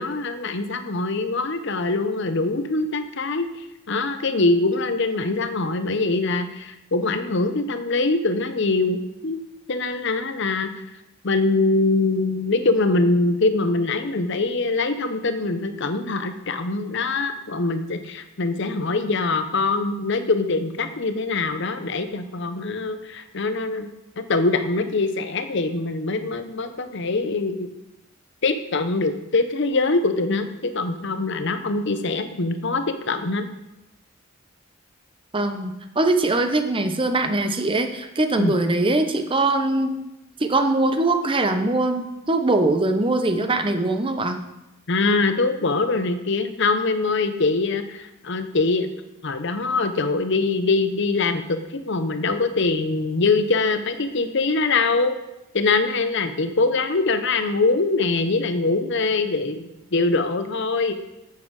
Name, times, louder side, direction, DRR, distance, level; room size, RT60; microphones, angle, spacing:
voice 1, 0.0-3.5 3.9-9.4 9.7-10.8 11.2-23.9 24.2-27.7 28.4-33.4 38.4-38.5 44.9-48.9 49.2-55.1 55.5-60.9, left 3 dB, 55° left, 9 dB, 0.8 m, -23 dB
voice 2, 35.3-40.0 40.4-44.4, right 2 dB, 25° right, 7 dB, 0.7 m, -22 dB
8.7 x 7.8 x 4.7 m, 0.94 s
head